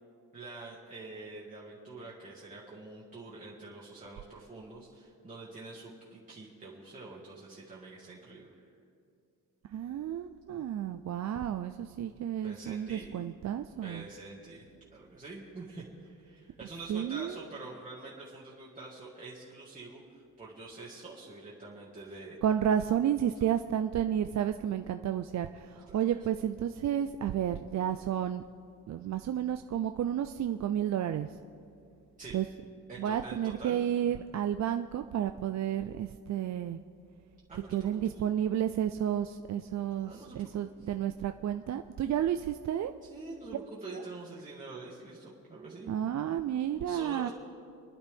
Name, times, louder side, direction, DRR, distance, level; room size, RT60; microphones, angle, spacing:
voice 1, 0.3-8.6 12.4-13.2 13.8-22.4 25.9-26.0 32.2-32.4 32.9-34.2 37.5-37.9 40.0-40.5 43.1-46.0 46.9-47.3, right 3 dB, 20° right, -7 dB, 2.0 m, -46 dB
voice 2, 9.7-14.1 16.9-17.4 22.4-28.4 28.9-31.3 32.3-32.5 33.0-36.8 37.7-42.9 45.9-47.3, right 10 dB, 50° right, 8 dB, 0.4 m, -31 dB
30.0 x 11.0 x 3.5 m, 2.4 s
wide cardioid pair, 165°, 36 cm